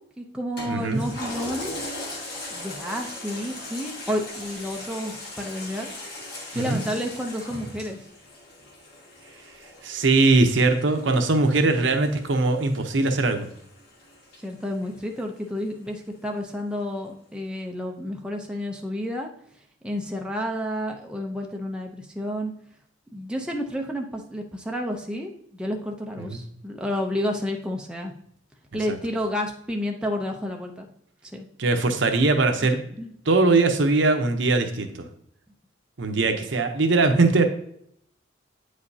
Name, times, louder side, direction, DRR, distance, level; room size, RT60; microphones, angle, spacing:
voice 1, 0.0-1.7 2.5-5.9 6.5-8.0 14.4-19.3 19.8-22.5 23.1-28.1 28.7-30.9 31.3-31.5 33.0-33.1, equal, 5° right, 0 dB, 0.6 m, -30 dB
Toilet flush, 0.6-15.4 15.9-16.0, left 2 dB, 55° left, 1.5 m, -39 dB
voice 2, 0.7-1.0 6.5-6.8 9.8-13.5 26.3-26.4 28.9-29.0 31.6-32.8 33.3-35.1 36.0-37.5, right 3 dB, 70° right, 6 dB, 0.8 m, -21 dB
8.5 x 5.0 x 2.7 m, 0.69 s
head